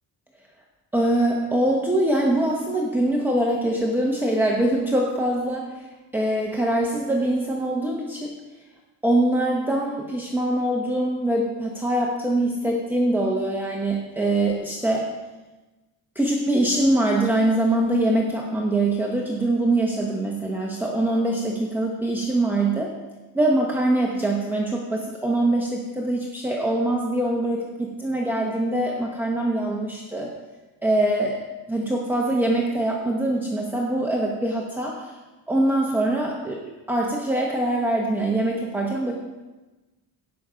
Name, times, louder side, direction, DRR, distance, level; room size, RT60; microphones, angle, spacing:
voice 1, 0.9-8.4 9.0-15.1 16.1-22.9 23.3-30.3 30.8-35.1 35.5-36.6 36.9-39.1, right 1 dB, 5° right, -2 dB, 1.0 m, -23 dB
16.5 x 6.0 x 5.1 m, 1.2 s
cardioid pair, 150°, 40 cm